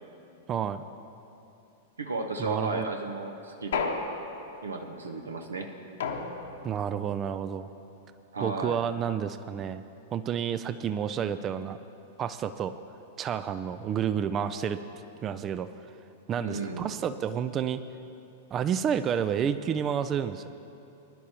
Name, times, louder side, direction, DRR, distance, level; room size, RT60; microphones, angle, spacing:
voice 1, 0.5-0.8 2.4-2.9 6.6-7.7 8.4-9.8 10.1-11.8 12.2-12.7 13.2-14.8 15.2-15.7 16.3-17.8 18.5-20.5, right 8 dB, 25° right, 12 dB, 0.4 m, -30 dB
voice 2, 2.0-4.0 4.6-5.7 8.3-8.8 16.4-16.9, right 3 dB, 75° right, 5 dB, 0.8 m, -34 dB
sound 1, 3.7-4.7 6.0-6.8, left 5 dB, 60° left, 1.0 m, -33 dB
20.5 x 11.0 x 2.9 m, 2.8 s
figure-of-eight pair, 95°, 0 cm